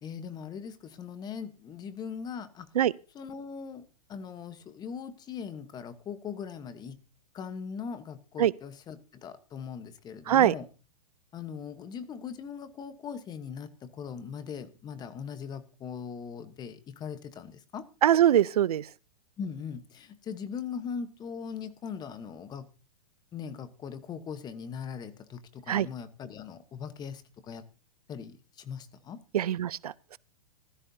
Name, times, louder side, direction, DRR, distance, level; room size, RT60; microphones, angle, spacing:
voice 1, 0.0-2.7 3.1-7.0 7.3-10.7 11.3-17.9 19.4-22.7 23.3-27.6 28.1-29.2, left 6 dB, 20° left, 1.1 m, -40 dB
voice 2, 18.0-18.9 25.7-25.9 29.3-30.2, right 11 dB, 85° right, 0.5 m, -23 dB
15.5 x 13.0 x 2.7 m
hypercardioid pair, 130°, 19 cm